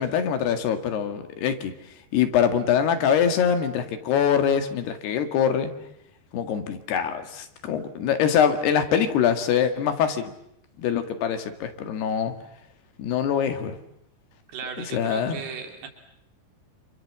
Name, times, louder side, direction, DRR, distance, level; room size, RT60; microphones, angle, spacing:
voice 1, 0.0-1.7 2.1-5.7 6.3-10.3 10.8-12.3 13.0-13.8 14.9-15.4, left 8 dB, 80° left, 8 dB, 4.0 m, -24 dB
voice 2, 14.5-15.9, right 6 dB, 80° right, 4 dB, 5.3 m, -36 dB
28.0 x 27.5 x 7.5 m, 0.77 s
omnidirectional pair, 4.6 m